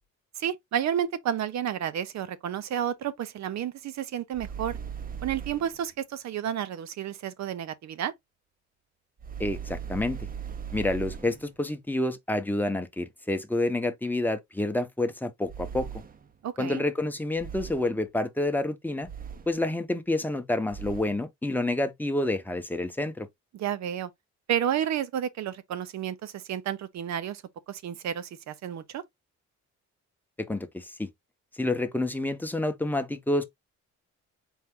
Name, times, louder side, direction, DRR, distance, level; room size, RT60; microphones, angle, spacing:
voice 1, 0.4-4.8 5.2-8.1 16.4-16.8 23.5-24.1 24.5-27.4 27.7-29.0, right 9 dB, 65° right, 0.7 m, -31 dB
sound 1, 4.3-5.8 9.2-11.5 15.5-16.3 17.4-18.0 19.0-19.7 20.7-21.2, right 7 dB, 30° right, 0.6 m, -39 dB
voice 2, 9.4-10.2 10.7-15.9 16.6-19.1 19.5-23.3 30.4-31.1 31.6-33.4, left 1 dB, 5° left, 0.8 m, -28 dB
4.5 x 2.5 x 3.7 m
cardioid pair, 90°, 30 cm